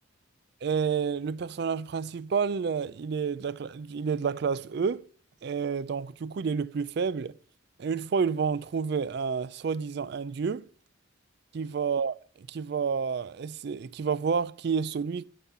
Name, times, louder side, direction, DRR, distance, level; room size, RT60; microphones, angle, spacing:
voice 1, 0.6-5.0 5.4-7.4 7.8-10.7 11.5-15.3, right 6 dB, 55° right, 0.3 m, -29 dB
10.5 x 4.3 x 6.7 m
head